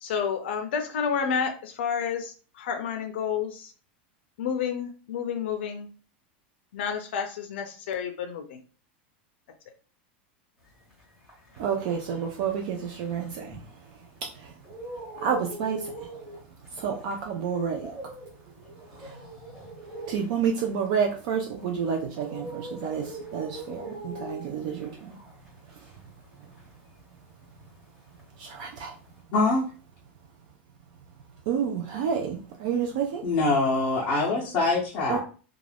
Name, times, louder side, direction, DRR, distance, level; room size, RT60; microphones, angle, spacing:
voice 1, 0.0-3.7 4.4-5.9 6.7-8.6, left 7 dB, 70° left, 5 dB, 0.4 m, -30 dB
sound 1, 10.8-14.1 14.4-27.9 28.1-29.2, right 1 dB, 5° right, 0.9 m, -43 dB
voice 2, 11.6-14.6 14.9-18.2 18.4-18.5 18.8-19.3 19.8-25.2 25.7-26.0 26.4-26.5 28.4-29.0 31.5-33.3 35.1-35.2, right 7 dB, 45° right, 2 dB, 0.3 m, -30 dB
voice 3, 29.3-29.7 33.2-35.2, left 3 dB, 30° left, -5 dB, 0.6 m, -24 dB
2.4 x 2.2 x 3.3 m, 0.38 s
supercardioid pair, 180°, 6 cm